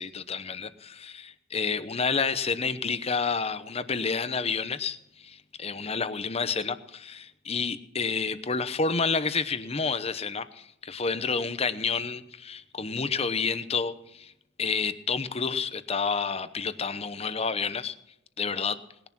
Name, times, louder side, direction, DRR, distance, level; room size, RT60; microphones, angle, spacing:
voice 1, 0.0-14.3 14.6-18.0 18.4-18.8, left 5 dB, 30° left, 13 dB, 0.9 m, -29 dB
20.0 x 11.0 x 6.0 m, 0.81 s
head